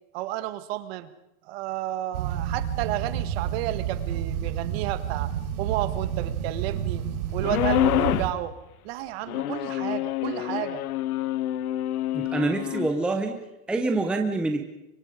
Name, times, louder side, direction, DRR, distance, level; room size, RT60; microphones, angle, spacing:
voice 1, 0.1-1.1 1.4-5.3 5.6-7.1 7.3-8.5 8.8-10.8, right 14 dB, 45° right, 11 dB, 1.6 m, -32 dB
sound 1, 2.1-8.3, right 10 dB, 90° right, 4.3 m, -30 dB
sound 2, 7.4-8.4 9.3-12.9, left 13 dB, 90° left, 1.1 m, -27 dB
voice 2, 12.1-14.6, right 2 dB, ahead, 4 dB, 0.8 m, -26 dB
30.0 x 25.0 x 5.0 m, 0.88 s
supercardioid pair, 170°, 43 cm